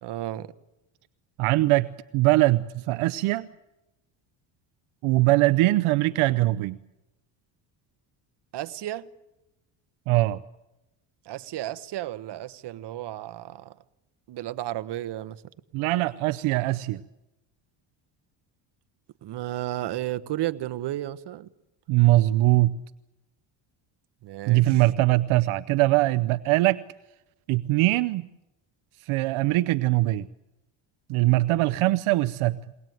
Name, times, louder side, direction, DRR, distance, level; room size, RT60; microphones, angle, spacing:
voice 1, 0.0-0.5 8.5-9.1 11.2-13.8 14.3-15.4 19.2-21.5 24.2-24.8, right 14 dB, 55° right, 1.1 m, -33 dB
voice 2, 1.4-1.9 2.1-3.5 5.0-6.8 10.1-10.4 15.7-17.0 21.9-22.8 24.5-26.8 27.5-28.3 29.0-30.3 31.1-32.6, right 18 dB, 75° right, 0.8 m, -22 dB
22.0 x 18.5 x 9.2 m
cardioid pair, 115°, 50 cm